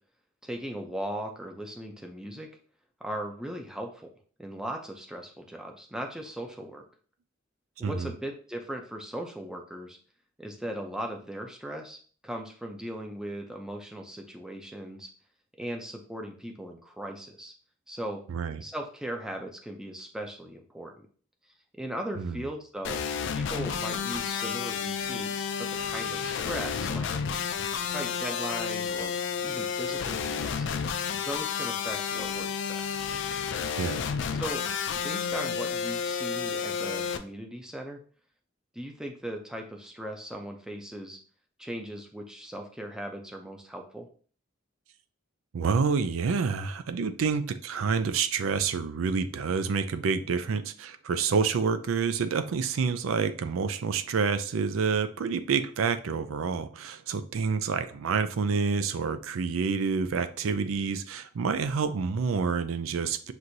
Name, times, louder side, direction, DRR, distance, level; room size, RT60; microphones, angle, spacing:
voice 1, 0.4-2.5 3.0-4.1 4.4-6.8 7.8-10.0 10.4-15.1 15.6-17.5 17.9-18.2 18.6-21.1 21.8-23.0 23.3-27.1 27.9-29.1 29.4-30.7 31.1-33.0 34.4-34.6 35.0-38.0 38.7-41.2 41.6-44.1, right 1 dB, 5° right, 3 dB, 0.5 m, -38 dB
voice 2, 7.8-8.1 18.3-18.6 22.2-22.4 33.8-34.0 45.5-63.3, right 5 dB, 85° right, 11 dB, 0.4 m, -28 dB
sound 1, 22.8-37.2, left 6 dB, 60° left, 0.3 m, -31 dB
6.1 x 2.6 x 2.7 m, 0.42 s
head